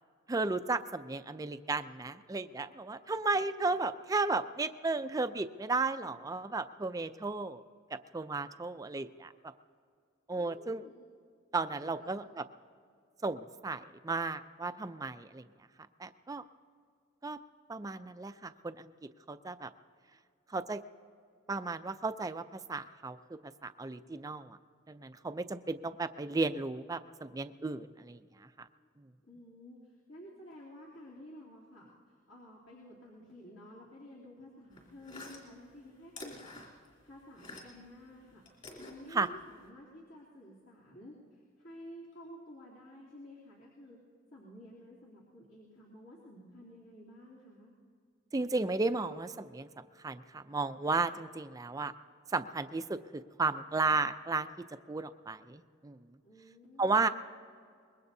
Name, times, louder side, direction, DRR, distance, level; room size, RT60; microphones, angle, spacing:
voice 1, 0.3-7.6 8.1-9.5 10.3-10.8 11.5-12.4 13.2-15.5 16.0-16.4 17.2-17.4 17.7-18.9 19.3-19.7 20.5-20.8 21.5-24.6 24.9-28.7 39.1-39.3 48.3-49.7 50.0-51.9 52.3-54.5 54.9-56.0 56.8-57.1, right 3 dB, 15° right, 10 dB, 0.4 m, -34 dB
voice 2, 10.3-11.1 11.8-12.3 29.2-36.5 37.0-38.4 38.8-44.0 44.3-47.7 56.2-57.1, equal, 70° left, -7 dB, 2.9 m, -52 dB
sound 1, 34.7-37.9 38.2-39.7, left 2 dB, 40° left, 3.1 m, -49 dB
25.0 x 21.0 x 2.7 m, 2.2 s
head